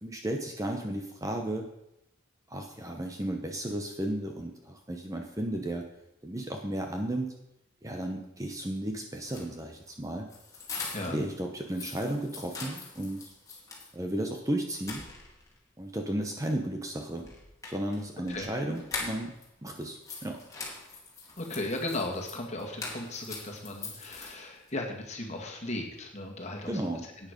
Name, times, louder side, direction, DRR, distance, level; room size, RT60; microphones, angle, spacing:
voice 1, 0.0-1.7 2.5-5.9 6.2-7.3 7.8-10.3 11.1-13.2 13.9-15.0 15.8-17.3 17.7-19.3 19.6-20.4 26.7-27.1, right 1 dB, 15° right, 3 dB, 0.9 m, -34 dB
sound 1, 9.2-11.3 11.6-13.9 14.3-14.4 14.7-15.6 17.2-19.5 19.8-24.7, left 3 dB, 15° left, 2.4 m, -42 dB
voice 2, 10.9-11.2 18.3-18.5 21.4-27.3, left 2 dB, 35° left, 1 dB, 2.0 m, -36 dB
11.5 x 9.1 x 5.2 m, 0.84 s
head